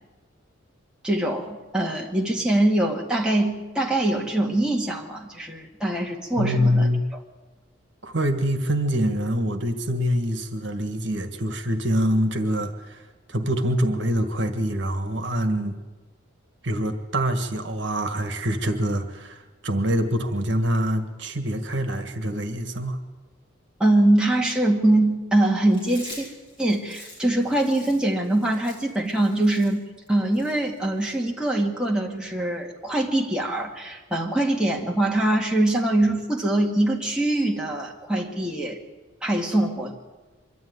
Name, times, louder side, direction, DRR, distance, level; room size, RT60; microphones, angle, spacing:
voice 1, 1.0-6.9 23.8-26.3 26.6-29.8 30.1-38.8 39.2-40.0, right 1 dB, 5° right, -2 dB, 2.0 m, -23 dB
voice 2, 6.4-7.0 8.0-13.0 13.3-15.8 16.6-23.0, equal, 65° right, 8 dB, 1.7 m, -25 dB
Chewing mastication, 25.7-31.2, left 1 dB, 25° left, 7.5 m, -45 dB
24.0 x 12.5 x 9.6 m, 1.2 s
head